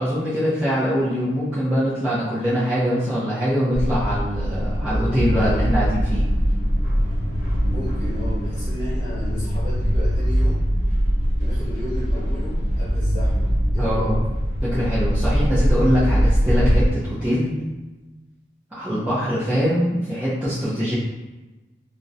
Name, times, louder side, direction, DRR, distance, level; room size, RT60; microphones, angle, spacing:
voice 1, 0.0-6.3 13.8-14.2 14.6-17.6 18.7-20.9, equal, 10° right, -12 dB, 0.4 m, -23 dB
sound 1, 3.7-16.9, equal, 45° right, 0.9 m, -22 dB
voice 2, 7.7-10.7 11.4-14.2, left 1 dB, 20° left, -12 dB, 1.2 m, -34 dB
2.4 x 2.0 x 2.6 m, 1.1 s
head